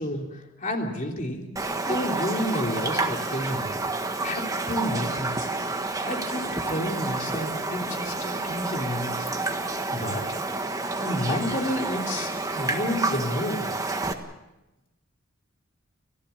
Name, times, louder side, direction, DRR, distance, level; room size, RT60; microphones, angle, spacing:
voice 1, 0.0-1.5 1.8-3.7 4.2-5.5 6.0-9.3 9.9-10.2 11.0-13.7, left 1 dB, 40° left, 2 dB, 3.3 m, -30 dB
Raindrop, 1.6-14.1, right 3 dB, 15° right, 1.5 m, -29 dB
29.5 x 15.5 x 7.1 m, 0.99 s
head